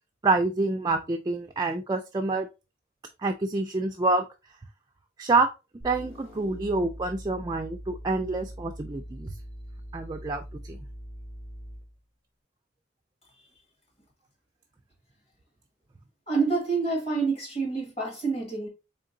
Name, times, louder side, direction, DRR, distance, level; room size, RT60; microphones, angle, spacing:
voice 1, 0.2-2.5 3.2-4.2 5.2-5.5 5.8-9.3 9.9-10.8, right 3 dB, 20° right, 0.3 m, -27 dB
sound 1, 5.8-12.0, equal, 80° left, 1.7 m, -42 dB
voice 2, 16.3-18.7, right 4 dB, 30° left, 1.7 m, -27 dB
3.8 x 3.7 x 2.6 m
head